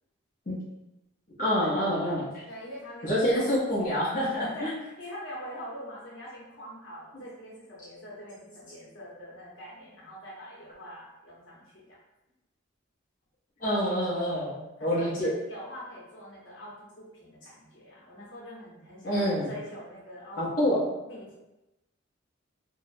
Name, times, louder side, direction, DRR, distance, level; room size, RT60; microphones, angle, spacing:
voice 1, 1.4-2.4 3.0-4.7 13.6-15.3 19.0-19.5 20.4-20.9, equal, 40° left, -9 dB, 0.6 m, -27 dB
voice 2, 2.5-3.5 4.4-12.0 14.8-20.8 21.1-21.4, equal, 70° left, -6 dB, 0.9 m, -44 dB
2.7 x 2.0 x 2.5 m, 0.99 s
head